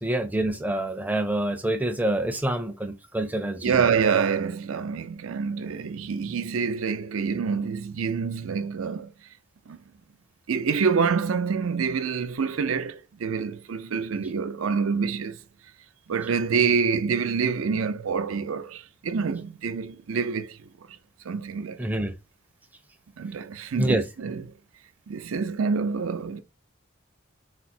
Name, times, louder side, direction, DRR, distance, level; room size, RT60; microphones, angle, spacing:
voice 1, 0.0-3.8 21.8-22.1 23.8-24.0, right 1 dB, 10° right, 0.5 m, -26 dB
voice 2, 3.6-9.1 9.7-9.8 10.5-15.4 16.1-20.6 21.2-21.9 23.2-24.5 25.1-26.4, right 5 dB, 85° right, 0.5 m, -26 dB
4.8 x 2.1 x 4.2 m
head